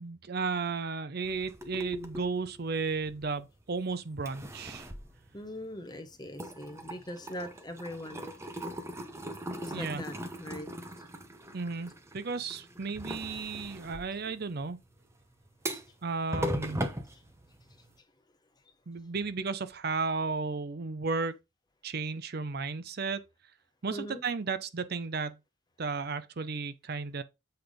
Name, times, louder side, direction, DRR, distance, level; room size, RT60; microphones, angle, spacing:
voice 1, 0.0-4.9 9.7-10.0 11.5-14.8 16.0-16.8 18.9-21.4 21.8-23.2 23.8-25.4 25.8-27.2, right 4 dB, 50° right, 0.6 m, -34 dB
sound 1, 1.2-3.7 4.1-6.0 6.3-17.9, equal, 15° right, 0.8 m, -40 dB
voice 2, 5.3-8.3 9.6-10.7 23.9-24.2, left 1 dB, 20° left, 0.9 m, -41 dB
8.0 x 3.5 x 5.0 m
head